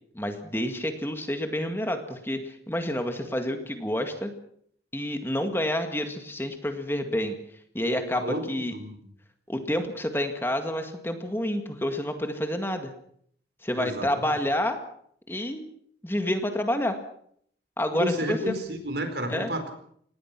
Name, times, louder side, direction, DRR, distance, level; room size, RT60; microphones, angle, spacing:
voice 1, 0.1-4.3 4.9-7.4 7.7-8.7 9.5-12.9 13.6-14.8 15.3-15.7 16.0-17.0 17.8-18.5 19.3-19.5, left 1 dB, 15° left, 6 dB, 1.9 m, -29 dB
voice 2, 8.1-9.0 13.8-14.3 17.9-19.7, equal, 70° right, 7 dB, 4.7 m, -31 dB
26.0 x 19.5 x 6.0 m, 0.65 s
head